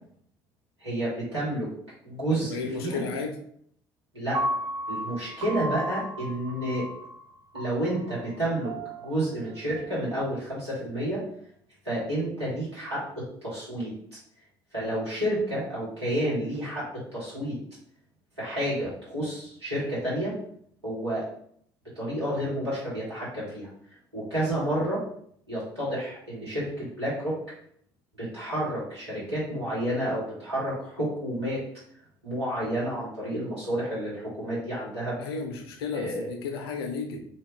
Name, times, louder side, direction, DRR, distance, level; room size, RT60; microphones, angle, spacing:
voice 1, 0.8-1.7 2.0-3.0 4.1-4.4 4.9-6.9 7.5-8.7 9.0-11.2 11.8-13.9 14.7-16.8 17.1-17.6 18.4-20.3 20.8-21.3 21.9-23.7 24.1-25.0 25.5-27.4 28.2-31.6 32.2-35.2 35.9-36.3, right 1 dB, 85° right, -9 dB, 1.3 m, -30 dB
voice 2, 2.3-3.3 35.2-37.2, left 4 dB, 70° left, 5 dB, 0.5 m, -33 dB
Piano, 4.3-10.5, right 1 dB, 45° right, 0.6 m, -35 dB
2.8 x 2.3 x 3.5 m, 0.65 s
figure-of-eight pair, 55°, 13 cm